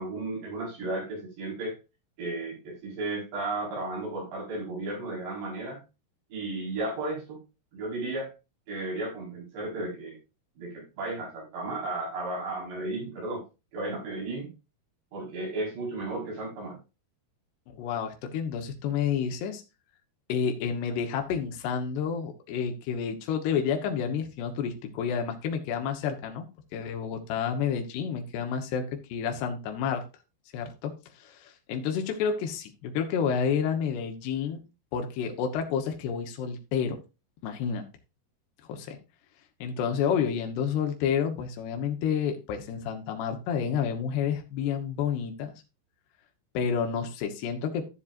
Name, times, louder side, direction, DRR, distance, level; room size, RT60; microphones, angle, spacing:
voice 1, 0.0-1.8 2.2-5.8 6.3-7.4 7.7-8.3 8.7-10.2 10.6-13.5 13.7-14.5 15.1-16.8, right 2 dB, 85° right, -3 dB, 7.0 m, -34 dB
voice 2, 17.7-19.6 20.3-26.5 26.7-30.0 30.5-34.6 34.9-37.0 37.4-37.9 38.7-39.0 39.6-45.5 46.5-47.9, left 7 dB, 80° left, 4 dB, 3.3 m, -30 dB
14.0 x 7.3 x 2.6 m, 0.28 s
omnidirectional pair, 4.8 m